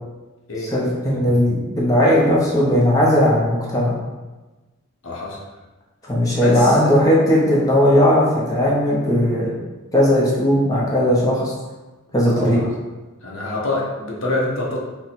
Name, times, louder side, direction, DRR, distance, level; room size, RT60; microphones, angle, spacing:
voice 1, 0.7-4.0 6.0-9.5 9.9-11.5 12.1-12.6, left 1 dB, 15° left, -6 dB, 0.7 m, -17 dB
voice 2, 5.0-5.4 6.4-7.1 12.3-12.7 13.2-14.8, left 2 dB, 65° left, -3 dB, 0.7 m, -26 dB
2.8 x 2.1 x 4.1 m, 1.2 s
head